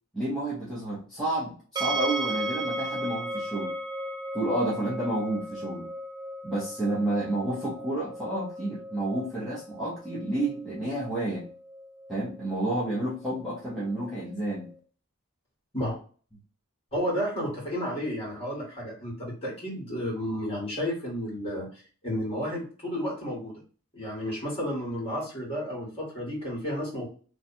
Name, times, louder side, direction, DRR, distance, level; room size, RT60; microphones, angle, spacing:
voice 1, 0.1-3.7 4.3-5.9 6.4-11.5 12.1-14.7, right 1 dB, ahead, -9 dB, 1.0 m, -30 dB
sound 1, 1.8-14.7, right 1 dB, 20° right, 0.5 m, -37 dB
voice 2, 16.9-23.6 23.9-27.1, equal, 25° left, -4 dB, 2.0 m, -32 dB
3.3 x 2.4 x 4.2 m, 0.40 s
head